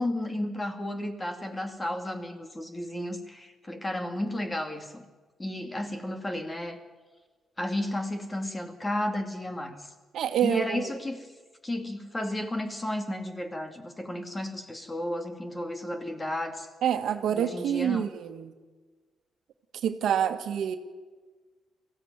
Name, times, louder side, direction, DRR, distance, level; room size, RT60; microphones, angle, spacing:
voice 1, 0.0-5.1 5.4-6.8 7.6-9.9 10.4-11.3 11.6-16.7 17.3-18.1, left 1 dB, 15° left, 6 dB, 2.5 m, -33 dB
voice 2, 10.1-10.9 16.8-18.5 19.8-20.8, right 9 dB, 80° right, 7 dB, 1.7 m, -27 dB
22.5 x 15.5 x 9.6 m, 1.3 s
cardioid pair, 115°, 0 cm